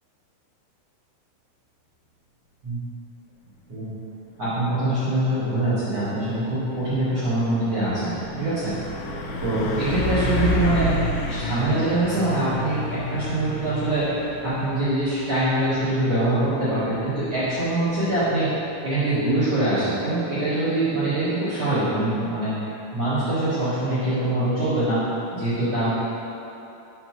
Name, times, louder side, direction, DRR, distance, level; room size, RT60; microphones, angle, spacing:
voice 1, 4.4-8.7 9.4-10.9 11.3-14.1 14.4-18.5 18.8-22.5 22.9-25.0 25.3-25.9, right 1 dB, 70° right, -12 dB, 1.5 m, -24 dB
Truck, 5.8-20.1, left 2 dB, 90° left, 2.4 m, -31 dB
7.8 x 3.0 x 5.8 m, 2.8 s
omnidirectional pair, 5.7 m